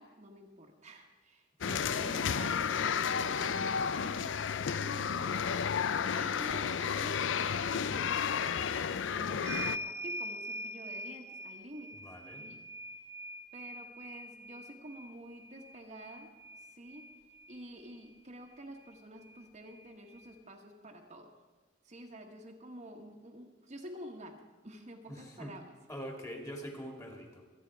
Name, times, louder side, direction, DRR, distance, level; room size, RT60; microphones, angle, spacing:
voice 1, 0.0-4.4 4.7-5.6 6.1-11.9 12.4-12.6 13.5-17.1 17.5-21.3 21.8-25.6, right 1 dB, 40° right, 1 dB, 1.5 m, -49 dB
sound 1, 1.6-9.8, left 7 dB, 75° left, 0.5 m, -32 dB
voice 2, 1.6-2.3 11.9-12.5 25.1-25.5 25.9-27.5, equal, 15° left, 2 dB, 2.3 m, -44 dB
sound 2, 9.4-17.6 18.8-18.9 19.2-20.3, equal, 15° right, 0.7 m, -43 dB
26.0 x 9.3 x 4.8 m, 1.3 s
head